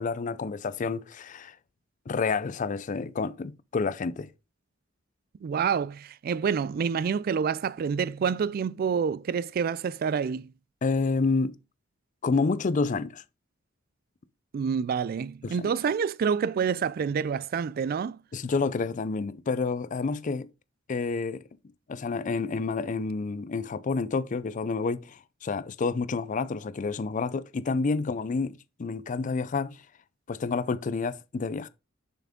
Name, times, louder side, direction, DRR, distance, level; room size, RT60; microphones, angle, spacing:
voice 1, 0.0-1.6 2.1-4.3 10.8-11.6 12.2-13.2 15.4-15.7 18.3-20.5 20.9-21.4 21.9-29.8 30.3-31.7, left 4 dB, 40° left, 0.4 m, -29 dB
voice 2, 5.4-10.5 14.5-18.2, right 6 dB, 50° right, 0.3 m, -28 dB
7.1 x 5.9 x 3.6 m
head